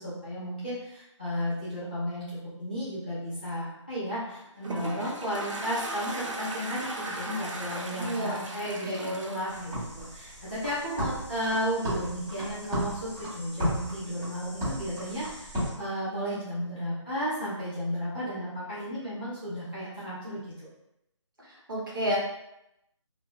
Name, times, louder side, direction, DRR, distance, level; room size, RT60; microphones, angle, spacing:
voice 1, 0.0-20.7, equal, 20° left, -12 dB, 0.5 m, -34 dB
Toilet flush, 4.3-10.6, right 2 dB, 75° right, 0.6 m, -38 dB
voice 2, 8.0-8.5 8.8-9.2 21.5-22.2, equal, 45° right, -6 dB, 0.9 m, -31 dB
sound 1, 9.5-15.7, equal, 5° right, 1.1 m, -34 dB
2.9 x 2.1 x 2.7 m, 0.84 s
figure-of-eight pair, 175°, 16 cm